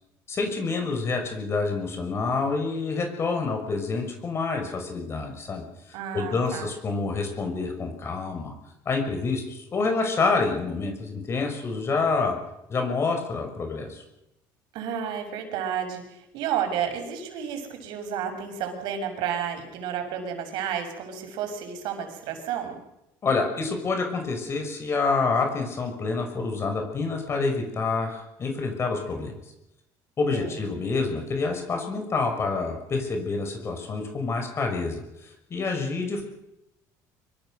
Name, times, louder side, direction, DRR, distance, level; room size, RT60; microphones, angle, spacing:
voice 1, 0.3-8.5 8.8-12.3 12.7-14.0 23.2-29.3 30.2-36.2, left 4 dB, 35° left, 4 dB, 6.2 m, -27 dB
voice 2, 5.9-6.7 14.7-22.8 30.3-30.6, right 8 dB, 75° right, 6 dB, 6.6 m, -31 dB
25.0 x 24.5 x 6.6 m, 0.87 s
cardioid pair, 120°, 8 cm